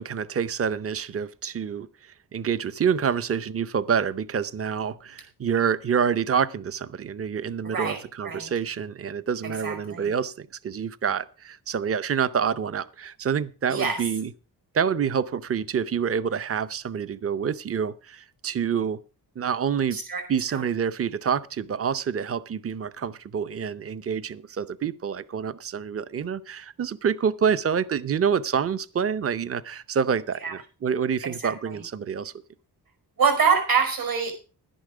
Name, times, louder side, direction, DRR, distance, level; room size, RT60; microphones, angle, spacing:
voice 1, 0.0-14.3 14.7-19.0 19.4-20.0 20.3-32.3, right 7 dB, 35° right, 0.7 m, -27 dB
voice 2, 7.7-8.5 9.4-10.1 13.7-14.0 19.9-20.2 20.5-20.6 30.4-30.5 31.4-31.7 33.2-34.3, right 6 dB, 60° right, 5.2 m, -25 dB
11.5 x 10.5 x 5.0 m
wide cardioid pair, 105°, 40 cm